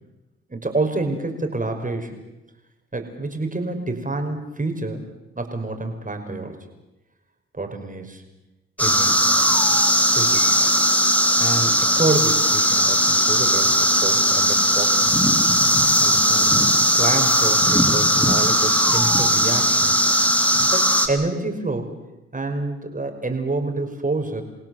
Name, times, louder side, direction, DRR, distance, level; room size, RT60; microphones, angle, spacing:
voice 1, 0.5-2.2 2.9-5.1 5.4-6.6 7.5-8.2 8.8-9.4 10.1-10.6 11.4-15.2 16.0-20.0 20.7-21.9 22.3-24.4, right 2 dB, 25° right, 4 dB, 5.5 m, -28 dB
sound 1, 8.8-21.1, equal, 5° left, 3.5 m, -18 dB
28.0 x 17.0 x 7.9 m, 0.97 s
supercardioid pair, 55°, 31 cm